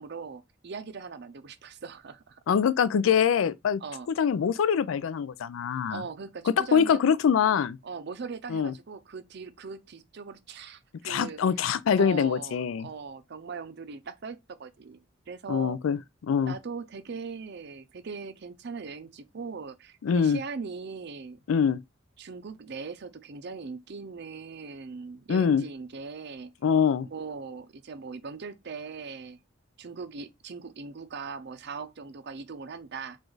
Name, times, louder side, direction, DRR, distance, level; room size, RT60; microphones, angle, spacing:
voice 1, 0.0-2.4 3.8-4.1 5.9-7.0 7.8-11.4 11.9-15.8 16.5-21.4 22.2-26.5 27.0-29.4 29.8-33.2, right 5 dB, 55° right, 0.5 m, -40 dB
voice 2, 2.5-3.8 4.2-6.0 6.7-7.8 8.5-8.7 11.0-12.9 15.5-16.0 16.2-16.5 20.0-20.4 21.5-21.8 25.3-25.6 26.6-27.1, left 7 dB, 90° left, 0.4 m, -24 dB
4.8 x 2.5 x 3.9 m
head